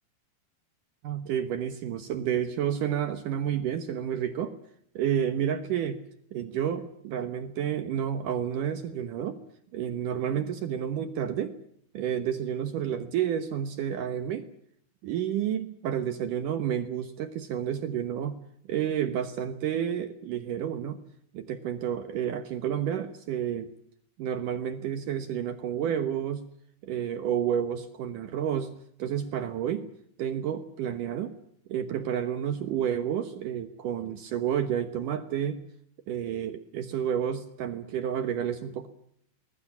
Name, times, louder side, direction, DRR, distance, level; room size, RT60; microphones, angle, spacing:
voice 1, 1.0-4.5 5.0-6.0 6.3-9.4 9.7-11.5 11.9-14.4 15.0-18.4 18.7-21.0 21.3-23.7 24.2-26.5 26.8-28.7 29.0-29.9 30.2-31.3 31.7-35.6 36.1-38.9, right 9 dB, 80° right, 10 dB, 1.9 m, -30 dB
25.0 x 20.5 x 7.3 m, 0.68 s
omnidirectional pair, 5.5 m